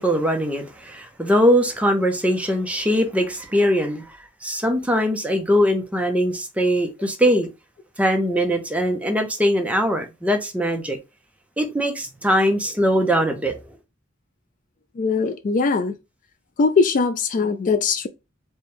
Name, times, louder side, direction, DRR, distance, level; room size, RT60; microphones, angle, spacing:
voice 1, 0.0-4.0 4.4-7.5 8.0-11.0 11.6-13.7, equal, 5° right, 0.7 m, -21 dB
voice 2, 15.0-15.9 16.6-18.1, left 4 dB, 40° left, 0.3 m, -20 dB
4.0 x 2.3 x 3.5 m
head